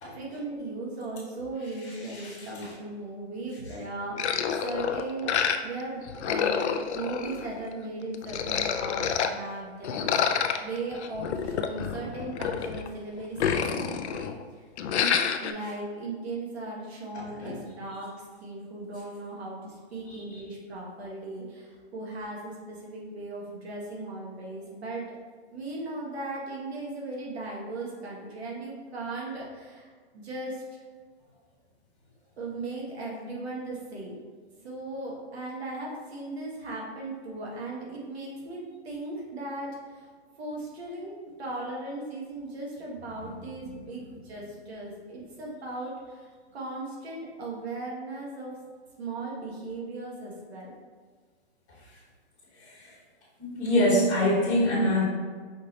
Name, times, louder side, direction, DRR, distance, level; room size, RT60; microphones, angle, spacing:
voice 1, 0.1-6.6 6.9-14.3 14.6-14.7 15.4-18.1 18.4-25.2 25.5-30.6 32.4-34.2 34.6-40.1 40.4-46.2 46.5-48.6 49.0-50.7, right 2 dB, 70° right, -3 dB, 1.4 m, -37 dB
voice 2, 2.1-2.5 17.4-17.5 20.3-20.4 43.2-43.3 52.7-52.9 53.4-55.0, left 1 dB, 5° left, -17 dB, 0.3 m, -25 dB
horrible gurgling monster, 4.2-5.8 6.1-7.7 8.1-9.3 9.8-12.9 13.2-14.4 14.8-15.5, left 7 dB, 90° left, 0.5 m, -28 dB
5.2 x 2.8 x 3.1 m, 1.5 s
hypercardioid pair, 165°, 33 cm